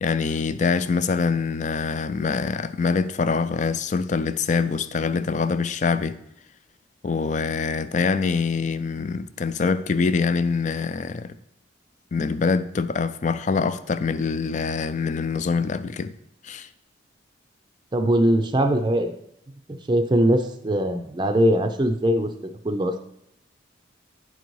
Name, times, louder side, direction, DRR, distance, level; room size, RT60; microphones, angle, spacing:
voice 1, 0.0-6.2 7.0-11.3 12.1-16.1 16.4-16.7, left 4 dB, 40° left, 0.4 m, -24 dB
voice 2, 17.9-19.1 19.7-22.3 22.6-22.9, right 1 dB, 25° right, 0.5 m, -21 dB
9.5 x 4.0 x 4.6 m
head